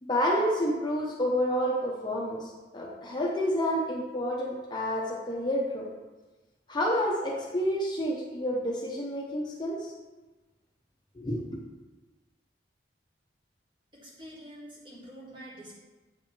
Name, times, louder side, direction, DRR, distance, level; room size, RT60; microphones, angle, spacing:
voice 1, 0.0-5.9 6.7-9.9 11.1-11.6, equal, 25° left, -3 dB, 0.7 m, -29 dB
voice 2, 13.9-15.7, right 1 dB, 25° right, -5 dB, 1.5 m, -46 dB
8.2 x 3.2 x 4.3 m, 1.2 s
head